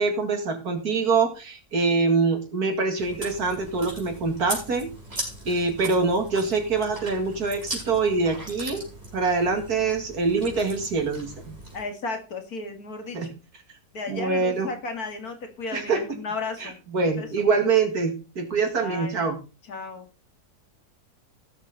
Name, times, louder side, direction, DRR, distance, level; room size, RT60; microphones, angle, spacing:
voice 1, 0.0-8.8 9.1-11.6 13.1-13.3 14.1-14.7 15.7-16.0 16.6-19.4, right 4 dB, 75° right, 5 dB, 2.6 m, -25 dB
Chewing mastication, 3.0-11.8, right 1 dB, 25° right, 4.7 m, -38 dB
voice 2, 11.7-13.3 13.9-16.8 17.2-17.5 18.8-19.3 19.6-20.1, left 3 dB, 70° left, 5 dB, 2.5 m, -34 dB
16.5 x 6.7 x 4.0 m, 0.33 s
omnidirectional pair, 1.6 m